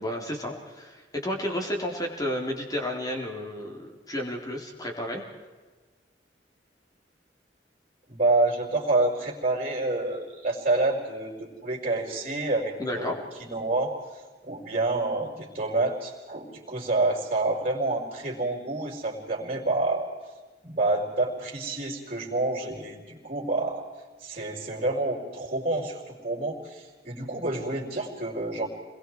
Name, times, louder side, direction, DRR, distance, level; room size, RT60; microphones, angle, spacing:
voice 1, 0.0-5.2 12.8-13.2, left 1 dB, 20° left, 0 dB, 3.6 m, -32 dB
voice 2, 8.1-13.1 13.5-20.1 20.6-23.8 24.2-28.7, right 2 dB, 40° right, -6 dB, 4.8 m, -28 dB
30.0 x 22.0 x 4.7 m, 1.3 s
head